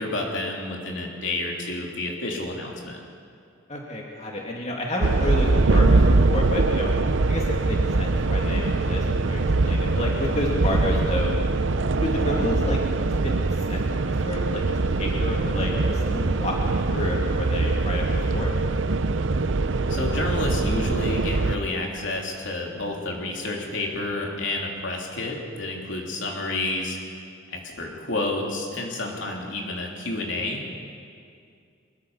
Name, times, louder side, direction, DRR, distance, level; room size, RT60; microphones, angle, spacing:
voice 1, 0.0-3.0 10.9-11.2 19.9-27.0 27.5-30.8, left 2 dB, 70° left, -1 dB, 3.3 m, -30 dB
voice 2, 3.7-6.0 6.3-6.9 7.3-11.4 12.0-13.3 13.7-14.6 15.0-18.6, left 1 dB, 35° left, -2 dB, 2.3 m, -30 dB
sound 1, 5.0-21.6, right 3 dB, 70° right, 0.7 m, -23 dB
23.5 x 21.5 x 5.7 m, 2.4 s
head